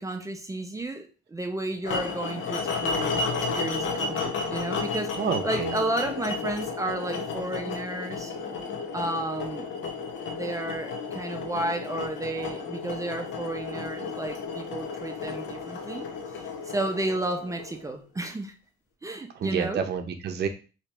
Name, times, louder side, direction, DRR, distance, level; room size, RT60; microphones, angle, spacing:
voice 1, 0.0-3.2 3.5-8.3 8.9-9.7 10.3-16.1 16.4-18.5 19.0-19.8, right 2 dB, 15° right, 5 dB, 0.5 m, -32 dB
sound 1, 1.8-18.0, left 4 dB, 75° left, 0.7 m, -32 dB
voice 2, 5.2-5.7 19.4-20.5, right 7 dB, 55° right, 7 dB, 0.6 m, -28 dB
2.9 x 2.7 x 3.3 m, 0.34 s
cardioid pair, 90°, 20 cm